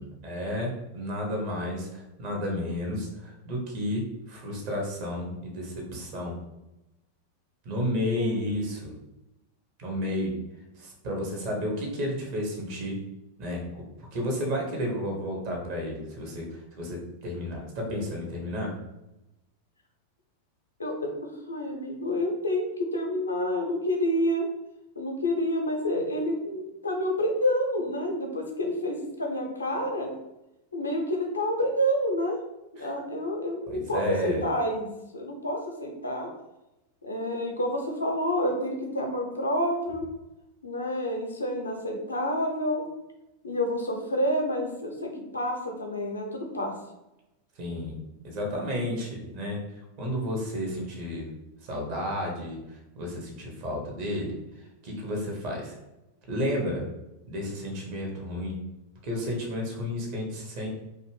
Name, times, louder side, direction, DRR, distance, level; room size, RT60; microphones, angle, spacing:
voice 1, 0.0-6.4 7.6-8.9 9.8-10.3 10.7-13.0 13.4-13.6 14.0-18.7 32.8-32.9 33.7-34.4 47.6-48.0 48.2-49.6 50.0-51.3 51.6-54.3 54.8-55.8 56.3-56.9 57.3-58.6 59.0-60.7, left 1 dB, 45° right, 0 dB, 0.8 m, -32 dB
voice 2, 20.8-24.5 25.0-30.1 30.7-32.4 32.7-34.9 35.1-36.3 37.0-40.1 40.6-42.9 43.4-46.7, equal, 75° left, 2 dB, 0.5 m, -28 dB
2.5 x 2.2 x 3.2 m, 0.94 s
figure-of-eight pair, 90°, 0 cm